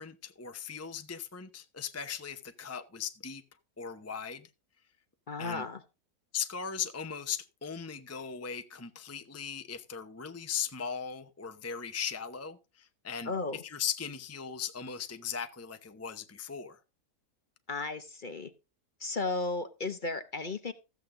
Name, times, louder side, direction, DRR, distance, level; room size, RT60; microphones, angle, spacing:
voice 1, 0.0-3.4 3.8-4.5 5.4-5.6 6.3-16.8, left 7 dB, 15° left, 0.5 m, -38 dB
voice 2, 5.3-5.8 13.2-13.6 17.7-18.5 19.0-20.7, left 3 dB, 40° left, 0.9 m, -34 dB
14.5 x 8.4 x 3.8 m
omnidirectional pair, 1.7 m